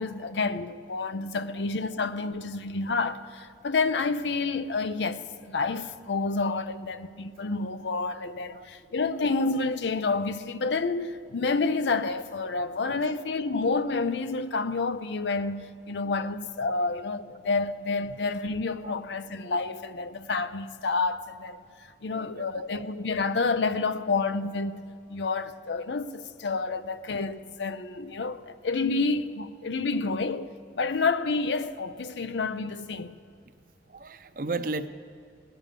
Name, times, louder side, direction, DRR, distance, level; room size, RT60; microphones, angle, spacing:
voice 1, 0.0-24.8 25.1-33.1, left 3 dB, 85° left, 0.6 m, -29 dB
voice 2, 22.1-22.8 33.9-34.9, right 3 dB, 50° right, 0.6 m, -36 dB
19.0 x 9.0 x 6.7 m
head